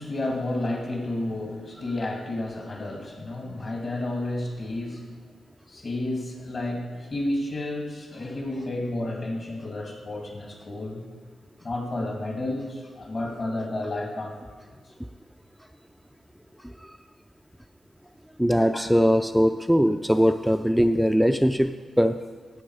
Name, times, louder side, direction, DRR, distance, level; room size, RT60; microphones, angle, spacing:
voice 1, 0.0-5.1 5.7-11.0 11.6-14.4 18.7-18.8, left 1 dB, 50° left, 1 dB, 2.7 m, -31 dB
voice 2, 18.4-22.2, equal, ahead, 7 dB, 0.3 m, -21 dB
12.5 x 8.6 x 4.9 m, 1.5 s
cardioid pair, 100°, 0 cm